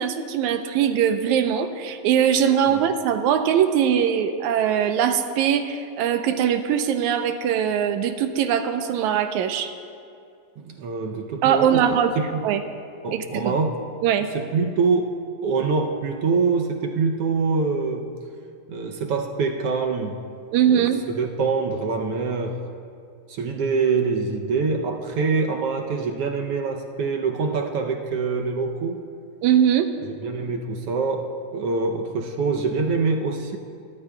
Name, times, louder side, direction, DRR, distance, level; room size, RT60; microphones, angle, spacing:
voice 1, 0.0-9.7 11.4-12.2 12.4-12.6 13.1-13.5 14.0-14.3 20.5-21.0 29.4-29.9, right 9 dB, 90° right, 8 dB, 2.1 m, -21 dB
voice 2, 10.6-11.8 12.2-12.4 13.0-13.8 14.3-15.1 15.4-18.1 18.7-20.2 20.7-20.9 21.1-22.6 23.3-29.0 30.2-33.6, right 4 dB, 70° right, 3 dB, 1.5 m, -25 dB
30.0 x 13.5 x 2.3 m, 2.4 s
omnidirectional pair, 3.4 m